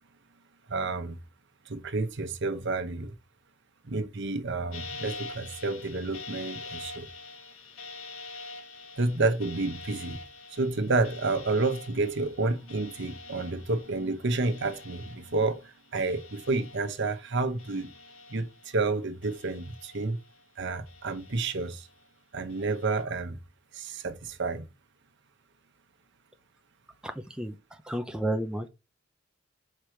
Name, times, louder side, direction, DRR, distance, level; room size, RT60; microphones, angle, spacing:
voice 1, 0.7-1.2 1.7-3.1 3.8-7.1 9.0-10.2 10.5-17.9 18.3-20.2 20.6-21.9 22.3-23.4 23.7-24.7, right 3 dB, 65° right, 1.0 m, -30 dB
sound 1, 4.7-17.3 17.6-18.8 19.2-20.4 20.9-21.9 22.5-23.0, left 3 dB, 80° left, 1.4 m, -46 dB
voice 2, 27.3-28.7, right 1 dB, 5° right, 0.5 m, -32 dB
5.2 x 4.8 x 4.4 m
head